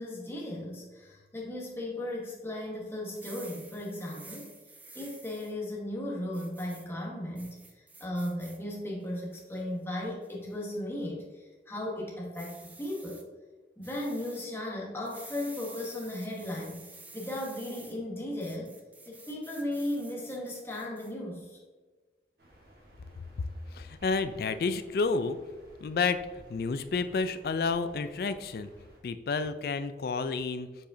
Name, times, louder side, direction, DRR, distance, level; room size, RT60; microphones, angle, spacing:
voice 1, 0.0-4.5 4.9-13.2 13.8-18.7 19.0-21.6, left 1 dB, 15° left, -3 dB, 1.2 m, -36 dB
sound 1, 3.1-5.5 6.3-6.8 7.3-8.6 9.0-9.6 10.2-10.5 12.3-13.2 13.8-14.5 15.0-17.9 18.4-21.1, right 2 dB, 10° right, 0.4 m, -51 dB
sound 2, 22.4-29.0, right 1 dB, 55° right, 1.3 m, -56 dB
voice 2, 23.7-25.4 25.8-26.2 26.5-28.7 29.0-30.7, left 4 dB, 55° left, 11 dB, 0.3 m, -30 dB
7.3 x 4.9 x 2.7 m, 1.3 s
head